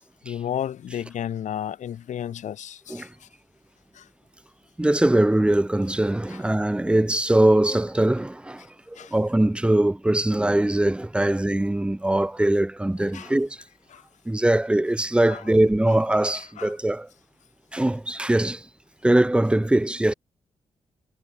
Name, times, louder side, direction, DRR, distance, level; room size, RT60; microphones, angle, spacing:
voice 1, 0.2-3.1 4.0-4.1 6.3-6.4 9.0-9.1 11.2-11.3 13.1-13.3 13.9-14.0 15.3-15.5 16.2-16.7, left 10 dB, 85° left, 1.1 m, -33 dB
voice 2, 4.8-13.6 14.2-17.1 17.7-18.7 19.0-20.1, right 1 dB, 10° right, 1.3 m, -22 dB
wide cardioid pair, 135°, 12 cm